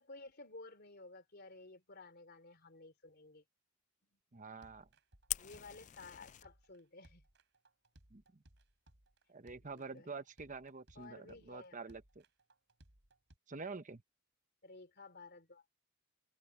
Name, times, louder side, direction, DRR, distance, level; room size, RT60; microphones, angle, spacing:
voice 1, 0.0-3.4 4.1-4.2 5.4-7.3 9.6-10.2 10.9-11.9 14.6-15.6, left 3 dB, 55° left, 3.1 m, -55 dB
voice 2, 4.3-4.9 8.1-8.2 9.3-12.2 13.5-14.0, right 4 dB, 40° right, 1.0 m, -47 dB
sound 1, 4.6-13.4, right 1 dB, 65° right, 4.4 m, -65 dB
Fire, 5.3-6.4, left 14 dB, 40° left, 0.4 m, -42 dB
head